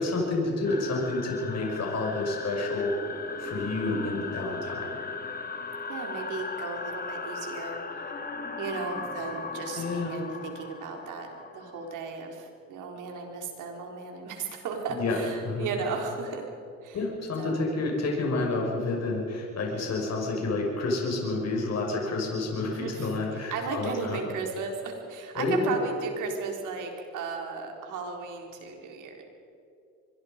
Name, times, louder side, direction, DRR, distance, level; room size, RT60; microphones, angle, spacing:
voice 1, 0.0-4.9 9.8-10.1 15.0-15.2 15.4-15.7 16.9-24.2 25.4-25.7, left 2 dB, 60° left, -1 dB, 6.0 m, -29 dB
sound 1, 0.6-11.9, left 4 dB, 30° left, 2.1 m, -37 dB
voice 2, 3.7-4.1 5.9-8.2 8.6-16.5 16.8-17.0 17.4-17.7 22.6-29.2, right 5 dB, 85° right, 2 dB, 4.3 m, -35 dB
25.0 x 22.0 x 5.3 m, 2.6 s
cardioid pair, 90°, 30 cm